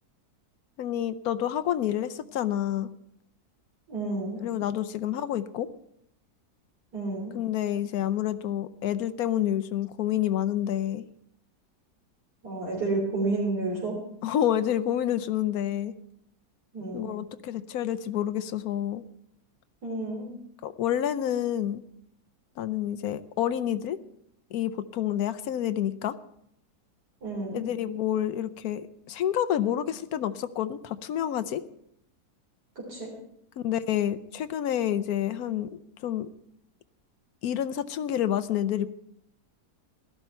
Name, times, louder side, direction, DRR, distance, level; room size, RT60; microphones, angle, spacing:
voice 1, 0.8-2.9 4.4-5.7 7.3-11.0 14.2-15.9 16.9-19.0 20.6-21.8 22.6-24.0 24.5-26.1 27.5-31.6 33.6-36.3 37.4-38.9, left 11 dB, 70° left, 13 dB, 1.1 m, -28 dB
voice 2, 3.9-4.4 6.9-7.4 12.4-13.9 16.7-17.2 19.8-20.3 27.2-27.6 32.9-33.1, right 2 dB, 85° right, -5 dB, 4.0 m, -30 dB
16.0 x 12.5 x 4.3 m, 0.72 s
omnidirectional pair, 1.7 m